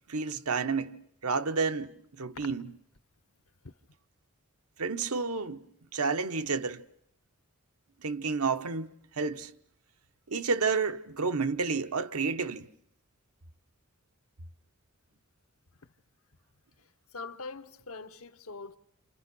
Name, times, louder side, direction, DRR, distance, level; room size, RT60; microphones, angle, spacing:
voice 1, 0.1-2.7 4.8-5.7 5.9-6.8 8.0-9.5 10.3-12.7, right 4 dB, 90° right, 1.0 m, -30 dB
voice 2, 17.1-18.8, left 4 dB, 75° left, 1.1 m, -42 dB
28.5 x 28.0 x 6.2 m
head